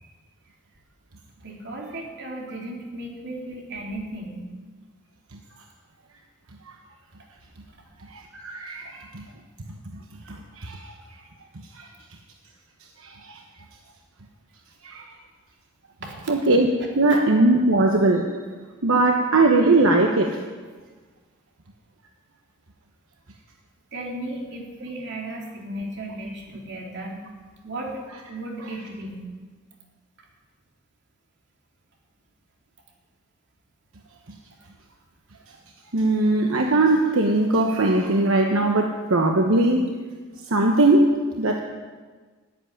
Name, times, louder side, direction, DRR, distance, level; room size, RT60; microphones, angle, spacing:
voice 1, 1.4-4.4 7.7-7.8 8.8-8.9 16.0-16.3 16.8-17.2 23.9-27.2 27.6-29.3, right 1 dB, 60° right, -1 dB, 3.2 m, -35 dB
voice 2, 8.1-9.2 10.3-10.9 11.8-11.9 13.0-13.4 14.8-15.1 16.3-18.3 18.8-20.4 35.9-39.9 40.5-41.6, right 2 dB, 85° right, 2 dB, 1.1 m, -20 dB
14.0 x 8.1 x 9.9 m, 1.4 s
head